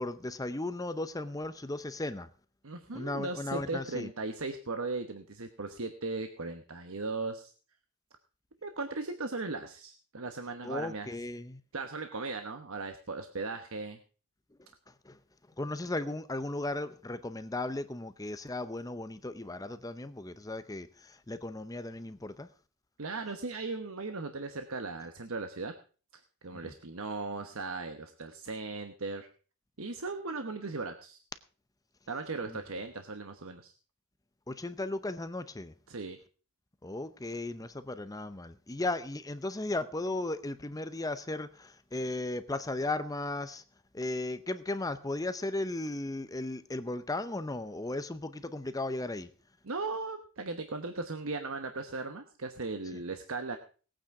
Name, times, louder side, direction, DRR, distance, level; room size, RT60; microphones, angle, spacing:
voice 1, 0.0-2.3 2.9-4.1 10.6-11.6 14.9-15.2 15.6-22.5 26.6-26.7 32.5-32.6 34.5-35.7 36.8-43.6 43.9-49.3 52.9-53.0, left 2 dB, 15° left, 0.7 m, -36 dB
voice 2, 2.6-7.5 8.6-11.1 11.7-14.0 23.0-25.7 26.4-29.3 29.8-31.2 32.1-33.7 35.9-36.2 49.6-53.6, right 3 dB, 70° right, 1.1 m, -37 dB
19.0 x 9.0 x 4.8 m
head